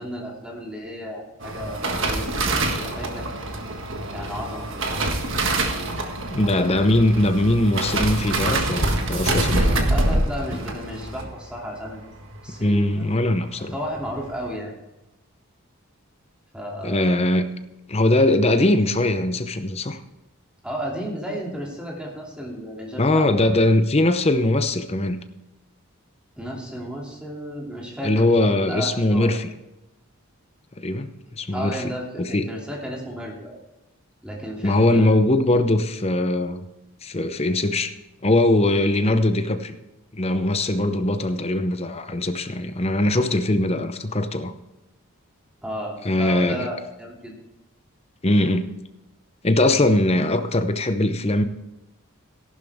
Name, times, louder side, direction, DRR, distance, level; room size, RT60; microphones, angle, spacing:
voice 1, 0.0-3.3 4.1-4.9 9.5-12.1 12.4-12.8 13.7-14.7 16.5-17.2 20.6-23.3 26.4-29.3 31.5-33.6 34.2-35.1 45.6-47.4, equal, 5° right, -3 dB, 2.7 m, -33 dB
sound 1, 1.4-12.8 13.1-13.4 13.7-14.2 14.5-14.6, right 2 dB, 55° right, 1.6 m, -25 dB
voice 2, 6.3-9.6 12.6-13.7 16.8-17.5 17.9-20.0 23.0-25.2 28.0-29.5 30.8-31.1 31.4-31.8 32.2-32.5 34.6-36.7 37.0-37.9 38.2-39.8 40.1-44.5 46.0-46.7 48.2-48.6 49.4-51.4, left 1 dB, 25° left, 9 dB, 0.7 m, -21 dB
14.5 x 11.5 x 3.6 m, 0.99 s
head